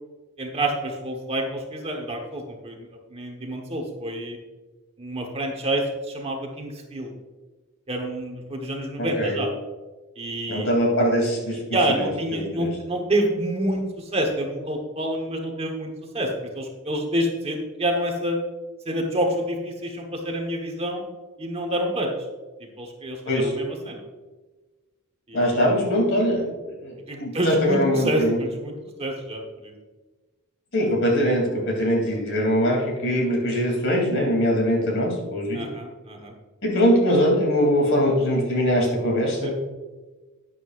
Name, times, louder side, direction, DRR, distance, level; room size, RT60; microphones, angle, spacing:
voice 1, 0.4-4.4 5.0-7.1 7.9-9.5 10.2-10.7 11.7-18.4 18.8-21.0 21.4-22.1 22.6-24.0 25.3-25.6 27.1-28.7 29.0-29.7 35.5-36.3 39.4-39.5, right 1 dB, 25° right, 2 dB, 1.2 m, -28 dB
voice 2, 9.0-9.4 10.5-11.6 11.9-12.7 23.2-23.5 25.3-28.4 30.7-35.6 36.6-39.5, equal, 55° left, 0 dB, 3.0 m, -22 dB
12.5 x 9.6 x 2.5 m, 1.2 s
head